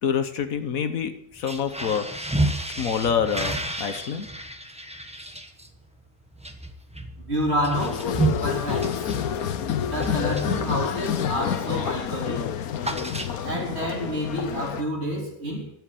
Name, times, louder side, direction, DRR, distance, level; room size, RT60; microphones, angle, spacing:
voice 1, 0.0-2.1 2.7-4.3, left 7 dB, 75° left, 1.5 m, -27 dB
sound 1, 1.3-11.3 11.6-11.9 12.2-13.7, right 1 dB, 5° right, 1.0 m, -31 dB
voice 2, 7.3-8.1 8.4-9.1 9.9-12.5 13.4-15.7, equal, 45° right, 3.8 m, -29 dB
sound 2, 7.7-14.8, left 9 dB, 90° left, 1.3 m, -28 dB
12.5 x 7.9 x 9.0 m
omnidirectional pair, 1.5 m